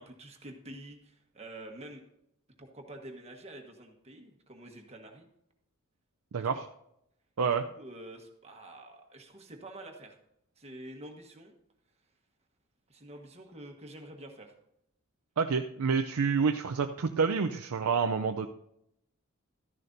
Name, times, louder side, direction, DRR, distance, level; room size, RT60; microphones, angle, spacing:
voice 1, 0.0-2.0 2.6-5.3 6.4-6.6 7.4-10.2 10.6-11.5 12.9-14.5, right 1 dB, 30° right, 3 dB, 1.3 m, -48 dB
voice 2, 6.3-6.6 7.4-7.6 15.4-18.5, right 5 dB, 85° right, 5 dB, 0.5 m, -28 dB
13.5 x 11.0 x 2.7 m, 0.78 s
head